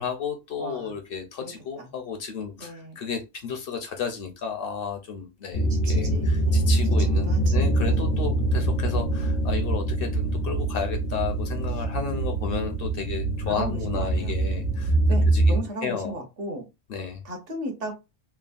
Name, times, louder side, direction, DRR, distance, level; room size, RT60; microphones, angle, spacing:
voice 1, 0.0-15.0 15.3-16.2 16.9-17.2, left 6 dB, 60° left, 0.7 m, -33 dB
voice 2, 0.6-1.0 1.4-1.9 2.6-3.0 5.7-6.8 7.2-8.3 13.5-14.3 15.1-16.7 17.2-17.9, right 1 dB, 60° right, 1.0 m, -36 dB
sound 1, 5.5-15.6, right 2 dB, 90° left, 1.1 m, -24 dB
3.3 x 2.0 x 2.4 m
omnidirectional pair, 1.2 m